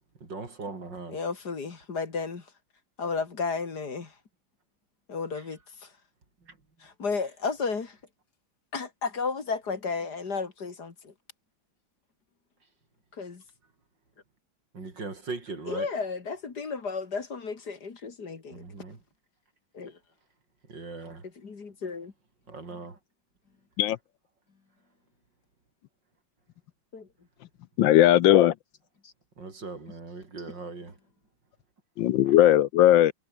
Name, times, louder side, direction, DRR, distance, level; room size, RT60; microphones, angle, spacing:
voice 1, 0.2-1.2 5.3-5.5 6.5-6.6 14.7-15.9 18.5-19.0 20.7-21.3 22.5-23.0 29.4-31.0, right 3 dB, 65° right, 4.7 m, -39 dB
voice 2, 1.1-2.5 3.0-4.2 5.1-5.9 6.8-8.0 8.7-11.1 13.1-13.4 15.7-18.6 19.7-20.0 21.4-22.1 26.9-27.1 29.0-29.1, left 4 dB, 55° left, 2.9 m, -33 dB
voice 3, 27.8-28.5 32.0-33.1, left 13 dB, 75° left, 1.4 m, -18 dB
omnidirectional pair, 2.2 m